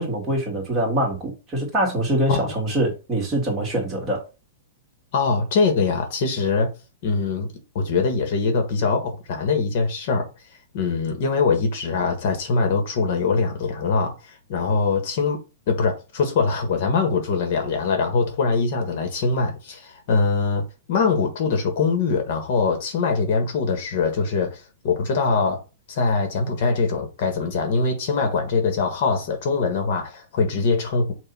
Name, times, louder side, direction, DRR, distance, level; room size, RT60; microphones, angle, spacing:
voice 1, 0.0-4.2, right 1 dB, 15° right, 2.3 m, -24 dB
voice 2, 5.1-6.7 7.0-7.5 7.7-10.3 10.7-25.6 25.9-31.1, left 4 dB, 50° left, 1.6 m, -23 dB
6.0 x 2.8 x 5.6 m
hypercardioid pair, 160°, 0 cm